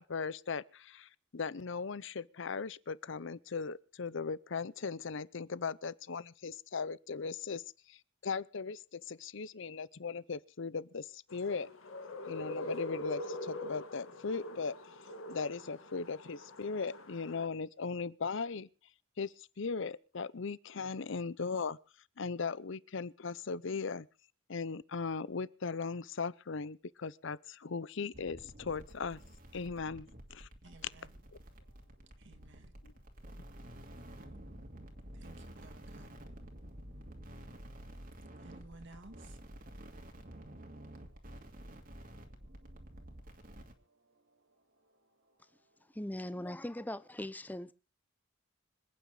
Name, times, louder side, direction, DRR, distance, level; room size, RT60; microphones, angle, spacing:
voice 1, 0.0-7.6 7.9-11.7 12.3-14.7 15.3-18.7 19.2-21.8 22.2-24.1 24.5-29.2 29.5-30.5 32.8-32.9, left 5 dB, 65° left, 0.7 m, -38 dB
sound 1, 11.3-17.5, left 1 dB, 85° left, 1.8 m, -43 dB
sound 2, 28.1-43.7, right 1 dB, 45° right, 2.6 m, -50 dB
voice 2, 30.6-31.2 31.6-46.0, right 2 dB, 60° right, 2.1 m, -62 dB
voice 3, 45.9-47.7, left 1 dB, 10° left, 0.7 m, -40 dB
26.0 x 9.2 x 3.9 m
head